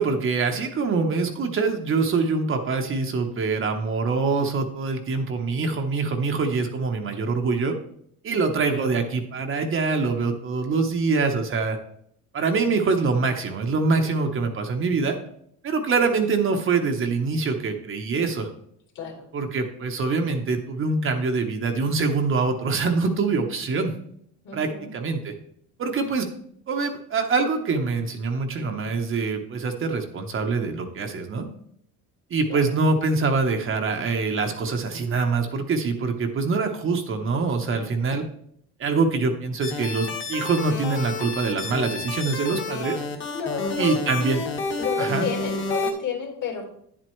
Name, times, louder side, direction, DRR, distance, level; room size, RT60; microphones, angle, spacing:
voice 1, 0.0-7.8 8.2-11.8 12.3-15.2 15.6-18.5 19.3-23.9 24.5-25.3 25.8-26.3 26.7-31.5 32.3-38.2 38.8-43.0 43.8-44.4 45.0-45.3, right 4 dB, 35° right, 4 dB, 0.9 m, -24 dB
voice 2, 18.9-19.3 24.4-24.9 32.5-32.7 43.3-44.0 44.8-46.6, left 6 dB, 55° left, 0 dB, 2.8 m, -31 dB
sound 1, 39.6-45.9, left 3 dB, 30° left, 1.5 m, -30 dB
9.8 x 7.7 x 3.1 m, 0.70 s
cardioid pair, 125°, 37 cm